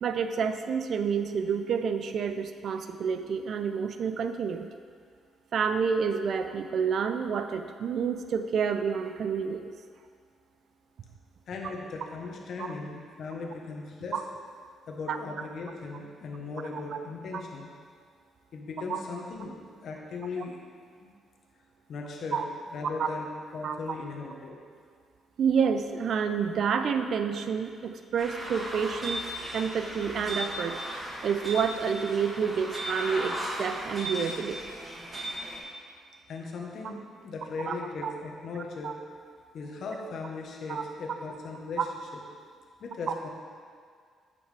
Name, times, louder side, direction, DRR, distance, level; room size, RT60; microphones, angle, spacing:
voice 1, 0.0-4.7 5.5-9.7 12.6-12.7 14.1-14.2 15.1-15.2 18.9-19.0 22.3-22.4 23.0-23.1 23.6-23.8 25.4-29.2 29.5-30.8 31.2-34.6 37.6-37.7 38.0-38.1 38.8-39.0 40.7-40.8 41.8-41.9 43.1-43.2, right 6 dB, 65° right, 8 dB, 0.5 m, -29 dB
voice 2, 11.5-14.1 14.9-17.7 18.5-20.6 21.0-21.1 21.9-24.6 36.3-38.9 39.5-41.9 42.1-42.2 42.8-43.3, left 3 dB, 60° left, 0 dB, 1.2 m, -38 dB
sound 1, 28.2-35.6, equal, 20° right, 1.6 m, -36 dB
8.8 x 7.0 x 3.4 m, 2.1 s
cardioid pair, 90°, 0 cm